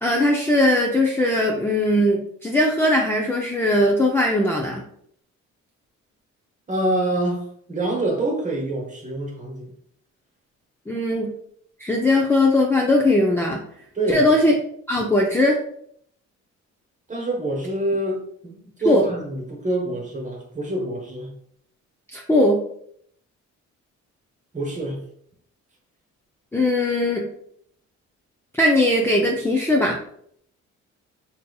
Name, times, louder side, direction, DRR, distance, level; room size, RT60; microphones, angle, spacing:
voice 1, 0.0-4.8 10.9-11.3 11.8-13.6 14.1-14.5 14.9-15.6 18.9-19.0 22.1-22.6 26.5-27.3 28.6-30.0, left 1 dB, 10° left, -1 dB, 0.4 m, -19 dB
voice 2, 6.7-9.7 13.9-14.3 17.1-21.3 24.5-25.0, right 1 dB, 25° right, 1 dB, 1.0 m, -26 dB
3.8 x 2.8 x 2.3 m, 0.67 s
cardioid pair, 90°, 30 cm